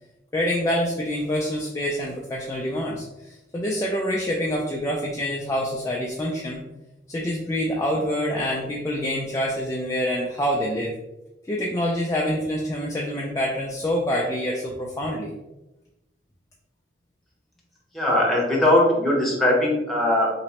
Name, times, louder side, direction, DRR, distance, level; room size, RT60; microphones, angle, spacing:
voice 1, 0.3-6.6 7.1-11.0 11.5-15.3, equal, 15° left, -3 dB, 0.3 m, -26 dB
voice 2, 17.9-20.3, left 1 dB, ahead, -4 dB, 0.9 m, -20 dB
3.1 x 2.9 x 2.9 m, 0.98 s
head